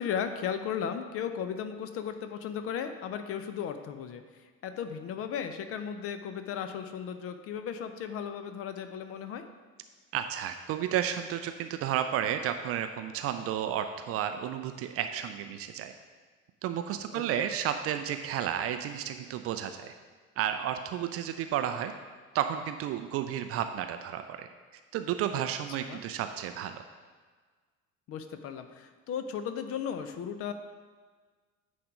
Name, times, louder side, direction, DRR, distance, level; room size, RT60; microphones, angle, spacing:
voice 1, 0.0-4.2 4.6-9.5 17.1-17.5 25.8-26.0 28.1-30.5, left 8 dB, 35° left, 9 dB, 0.5 m, -35 dB
voice 2, 10.1-15.9 16.6-19.9 20.4-21.9 22.3-24.5 24.9-26.8, right 10 dB, 35° right, 8 dB, 0.4 m, -32 dB
9.3 x 3.5 x 5.1 m, 1.5 s
figure-of-eight pair, 60°, 43 cm